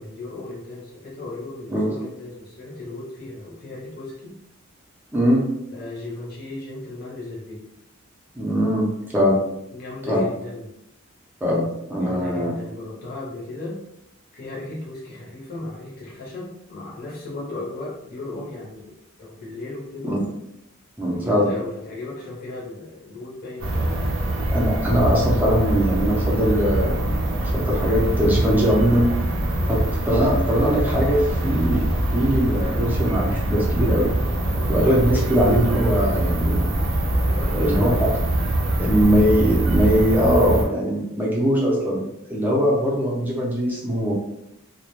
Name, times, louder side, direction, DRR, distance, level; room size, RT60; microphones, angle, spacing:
voice 1, 0.0-4.4 5.7-7.6 9.7-10.7 12.0-13.8 14.3-20.2 21.0-24.0 29.5-29.7 34.5-34.8 37.1-38.0, left 2 dB, 45° left, -5 dB, 0.6 m, -36 dB
voice 2, 5.1-5.4 8.4-8.9 9.1-9.4 10.1-10.2 11.4-12.5 20.0-20.2 21.0-21.5 24.5-29.1 29.7-31.9 32.1-34.1 34.7-36.7 37.5-37.9 38.8-42.0 42.3-44.1, equal, 10° right, -4 dB, 0.5 m, -21 dB
sound 1, 23.6-40.6, right 1 dB, 60° right, 0.4 m, -23 dB
2.2 x 2.1 x 3.0 m, 0.81 s
head